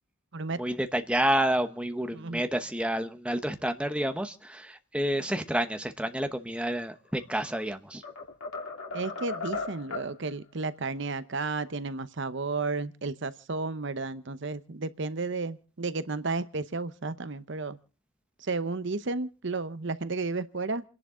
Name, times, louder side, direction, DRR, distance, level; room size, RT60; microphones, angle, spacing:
voice 1, 0.6-8.0, right 1 dB, 5° right, 0.9 m, -29 dB
sound 1, 7.2-7.7 8.0-10.1, left 3 dB, 90° left, 3.2 m, -37 dB
voice 2, 8.9-17.8 18.4-20.8, right 3 dB, 55° right, 0.8 m, -32 dB
28.5 x 11.0 x 3.7 m
head